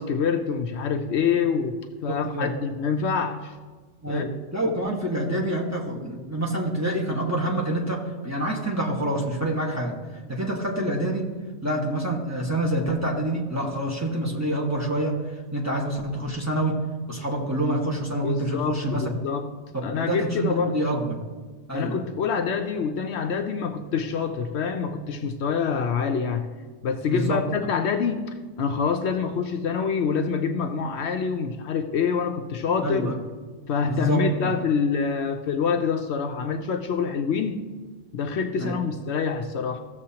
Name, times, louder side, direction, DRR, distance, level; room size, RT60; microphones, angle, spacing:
voice 1, 0.0-3.5 4.1-4.2 18.2-19.5 19.8-20.8 21.7-26.5 26.8-33.2 33.7-37.7 38.1-39.8, left 5 dB, 70° left, 6 dB, 0.9 m, -26 dB
voice 2, 2.1-2.5 4.0-9.9 10.3-11.3 11.6-15.1 15.5-16.8 17.1-19.1 20.0-21.2 21.7-22.0 27.1-27.4 32.8-33.1 33.8-34.5 38.6-38.8, right 1 dB, 15° right, -2 dB, 1.2 m, -27 dB
16.0 x 6.9 x 2.8 m, 1.4 s
omnidirectional pair, 1.2 m